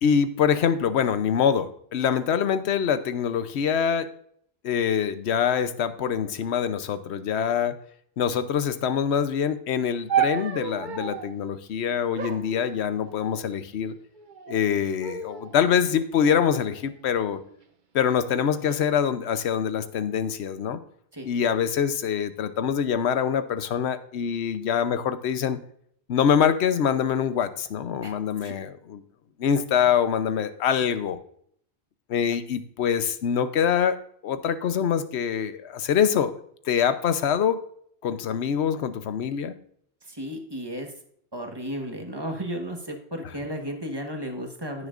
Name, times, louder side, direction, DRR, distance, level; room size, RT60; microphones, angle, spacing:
voice 1, 0.0-4.1 4.6-7.7 8.2-13.9 14.5-17.4 17.9-20.8 21.2-25.6 26.1-29.0 29.4-31.2 32.1-34.0 34.2-36.3 36.7-37.6 38.0-39.5, left 8 dB, 75° left, 12 dB, 1.0 m, -24 dB
sound 1, 10.1-11.4 12.2-13.4 14.1-14.6 15.0-15.6 16.3-17.5 18.3-18.8, right 8 dB, 50° right, 0.9 m, -32 dB
voice 2, 40.0-40.9 41.3-44.9, equal, 20° right, 3 dB, 1.3 m, -34 dB
15.5 x 6.5 x 2.5 m, 0.65 s
omnidirectional pair, 1.1 m